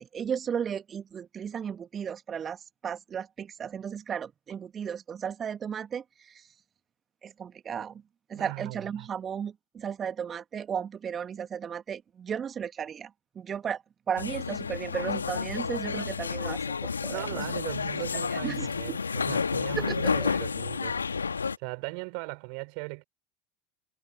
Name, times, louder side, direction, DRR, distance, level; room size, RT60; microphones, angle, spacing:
voice 1, 0.0-6.5 7.2-8.0 8.3-17.4 18.3-19.0 19.7-20.3, right 7 dB, 30° right, 1.6 m, -35 dB
voice 2, 8.3-9.1 17.1-21.2 21.6-23.0, right 40 dB or more, 55° right, 3.7 m, -39 dB
sound 1, 14.2-21.6, left 5 dB, 80° left, 1.6 m, -30 dB
figure-of-eight pair, 75°, 0 cm